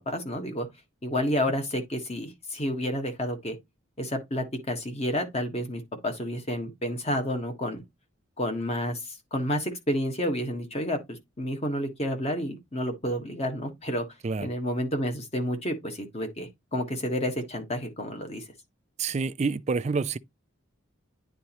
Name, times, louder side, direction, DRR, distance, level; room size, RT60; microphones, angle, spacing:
voice 1, 0.1-0.7 1.0-3.6 4.0-7.8 8.4-14.1 14.4-18.4, equal, 30° left, 1.4 m, -30 dB
voice 2, 19.0-20.2, right 4 dB, 30° right, 0.3 m, -28 dB
9.4 x 3.9 x 3.0 m
head